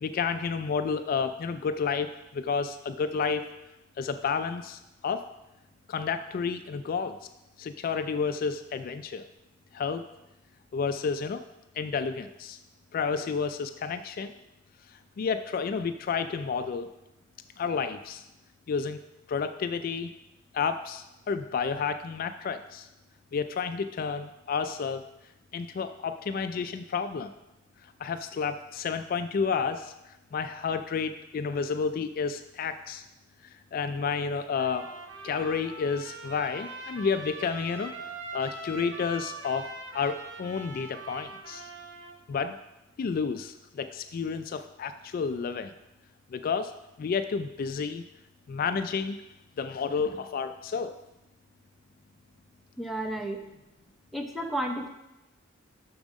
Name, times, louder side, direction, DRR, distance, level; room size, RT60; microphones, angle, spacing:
voice 1, 0.0-3.5 4.0-5.2 5.9-7.2 7.6-9.3 9.7-10.1 10.7-11.4 11.8-12.6 12.9-14.3 15.2-16.9 17.6-18.2 18.7-19.0 19.3-20.1 20.5-22.9 23.3-25.0 25.5-27.3 28.0-29.9 30.3-33.0 33.7-34.9 35.2-37.9 38.3-39.7 39.9-41.7 42.3-42.5 43.0-45.7 46.3-46.7 47.0-48.0 48.5-49.2 49.6-51.0, left 5 dB, 50° left, 9 dB, 0.3 m, -30 dB
Trumpet, 34.6-42.2, right 2 dB, 70° right, 1.0 m, -42 dB
voice 2, 52.8-53.4 54.1-54.9, right 1 dB, ahead, 1 dB, 0.8 m, -32 dB
7.1 x 6.3 x 5.1 m, 0.96 s
head